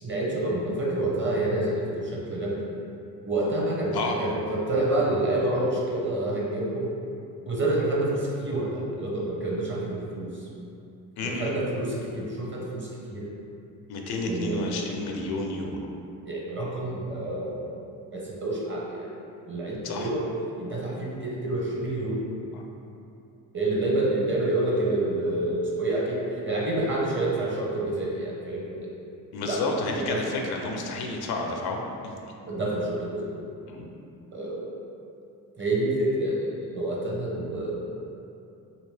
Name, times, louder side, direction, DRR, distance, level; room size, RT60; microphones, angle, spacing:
voice 1, 0.0-2.6 3.2-6.9 7.5-10.4 11.2-13.3 14.3-14.7 16.2-17.7 18.1-19.1 19.5-20.3 20.6-22.2 23.5-28.9 29.4-29.6 29.9-30.2 32.5-33.3 34.3-34.7 35.6-37.9, right 1 dB, 30° right, -4 dB, 0.9 m, -28 dB
voice 2, 3.9-4.3 11.2-11.5 13.9-15.9 19.8-20.1 22.5-22.6 29.3-32.1 33.7-33.9, left 2 dB, 75° left, 1 dB, 0.6 m, -31 dB
3.2 x 2.9 x 3.2 m, 2.6 s
cardioid pair, 75°, 38 cm